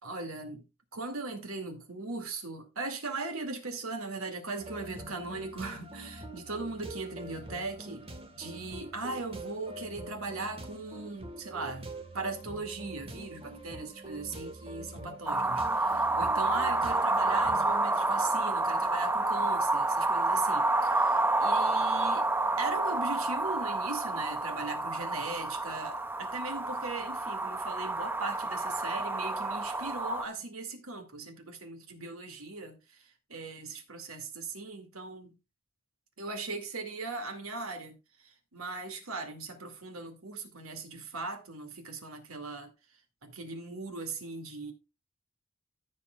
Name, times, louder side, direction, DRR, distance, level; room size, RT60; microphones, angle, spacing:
voice 1, 0.0-0.6 0.9-8.1 8.3-22.3 22.6-35.3 36.2-42.7 43.2-44.7, right 3 dB, 90° right, 2.3 m, -39 dB
sound 1, 4.6-17.8, right 2 dB, 25° right, 1.4 m, -45 dB
sound 2, 15.3-30.2, right 2 dB, 10° right, 0.4 m, -29 dB
15.0 x 7.6 x 2.3 m
head